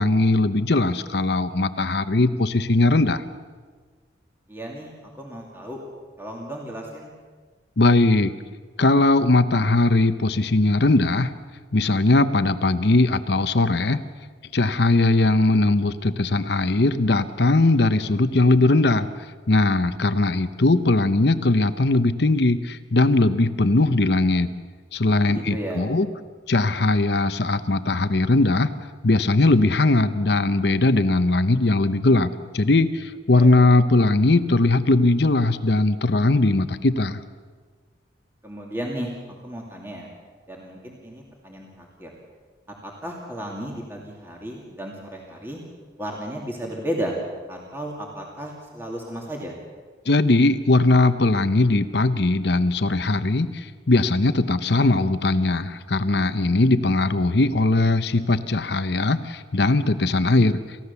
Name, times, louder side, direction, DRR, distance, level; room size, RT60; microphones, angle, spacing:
voice 1, 0.0-3.2 7.8-8.3 8.8-11.3 11.7-14.0 14.5-19.1 19.5-24.5 24.9-26.1 26.5-28.7 29.0-37.2 50.1-60.6, left 2 dB, 60° left, 11 dB, 0.9 m, -19 dB
voice 2, 4.5-4.9 5.1-5.8 6.2-7.1 25.3-25.9 33.3-33.6 38.4-39.1 39.4-40.1 40.5-42.1 42.8-45.6 46.0-47.2 47.5-49.6, equal, 10° right, -1 dB, 2.5 m, -34 dB
28.5 x 15.5 x 7.0 m, 1.5 s
head